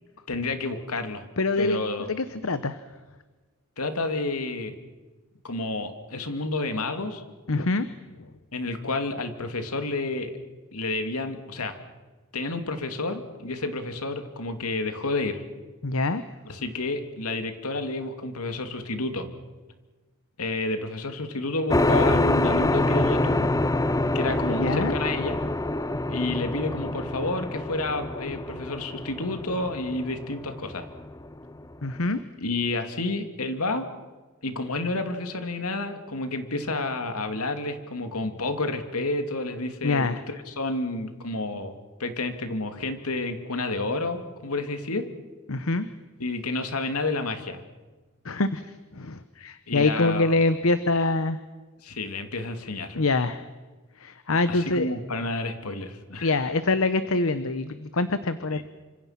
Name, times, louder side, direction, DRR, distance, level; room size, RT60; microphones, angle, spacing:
voice 1, 0.3-1.2 1.6-2.1 3.8-4.7 5.4-7.2 8.5-10.3 10.7-11.8 12.3-15.4 16.5-19.3 20.4-23.5 24.1-25.4 26.1-30.9 32.4-33.9 34.4-41.7 42.0-45.1 46.2-47.6 49.7-50.3 51.8-53.0 54.5-56.3 58.5-58.6, left 2 dB, 90° left, 7 dB, 2.6 m, -30 dB
voice 2, 1.4-2.8 7.5-7.9 8.2-8.3 15.8-16.2 24.6-24.9 31.8-32.2 39.8-40.2 45.5-45.9 48.2-51.4 52.9-53.5 54.0-54.9 56.2-58.7, left 3 dB, 65° left, 12 dB, 1.0 m, -25 dB
sound 1, 21.7-31.8, left 2 dB, 15° left, 0.8 m, -26 dB
28.0 x 26.0 x 5.9 m, 1.3 s
head